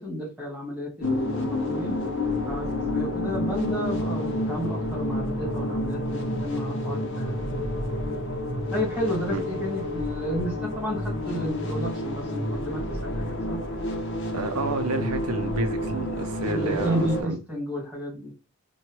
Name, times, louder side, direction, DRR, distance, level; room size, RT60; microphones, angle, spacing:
voice 1, 0.0-2.0 2.4-7.8 8.7-13.6 16.4-18.3, equal, 5° right, 1.6 m, -32 dB
sound 1, 1.0-17.2, left 1 dB, 55° left, 0.6 m, -29 dB
voice 2, 14.3-17.4, right 3 dB, 85° right, 0.6 m, -30 dB
2.9 x 2.3 x 2.9 m
head